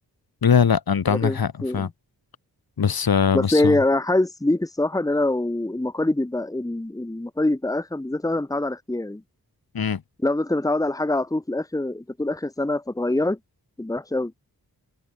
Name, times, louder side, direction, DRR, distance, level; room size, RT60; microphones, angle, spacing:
voice 1, 0.4-1.9 2.8-3.8 9.7-10.0, left 7 dB, 70° left, 2.3 m, -21 dB
voice 2, 1.1-1.9 3.3-9.2 10.2-13.4 13.8-14.3, left 2 dB, 10° left, 1.5 m, -24 dB
wide cardioid pair, 80°, 38 cm